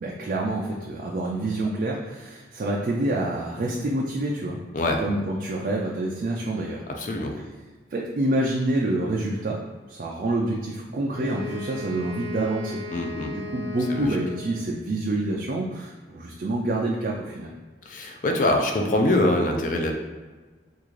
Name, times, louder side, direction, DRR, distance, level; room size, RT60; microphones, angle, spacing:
voice 1, 0.0-4.6 5.0-6.8 7.9-9.6 9.9-12.8 13.2-17.5, right 1 dB, 50° right, -2 dB, 0.3 m, -27 dB
voice 2, 6.9-7.3 12.9-13.3 13.9-14.2 17.9-19.9, left 1 dB, 45° left, 3 dB, 0.4 m, -24 dB
Wind instrument woodwind instrument, 11.1-14.8, left 1 dB, 85° right, 0.7 m, -37 dB
3.6 x 2.4 x 3.1 m, 1.3 s
head